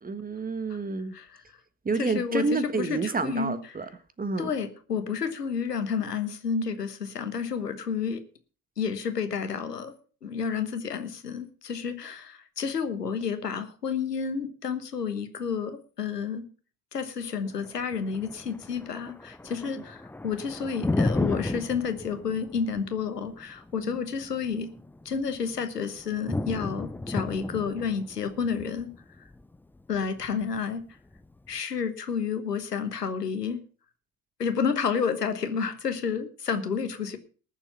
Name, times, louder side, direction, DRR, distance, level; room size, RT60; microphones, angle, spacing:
voice 1, 0.0-1.1 1.8-3.9 4.2-4.5 23.8-24.0, right 4 dB, 20° right, 12 dB, 1.5 m, -29 dB
voice 2, 1.9-3.6 4.4-8.2 8.8-9.9 10.2-16.5 16.9-24.7 25.0-28.9 29.9-30.8 31.5-33.6 34.4-37.2, left 6 dB, 85° left, 10 dB, 1.3 m, -30 dB
Thunder, 17.5-31.5, left 2 dB, 5° left, 0.6 m, -34 dB
19.0 x 7.2 x 5.7 m, 0.40 s
figure-of-eight pair, 60°, 46 cm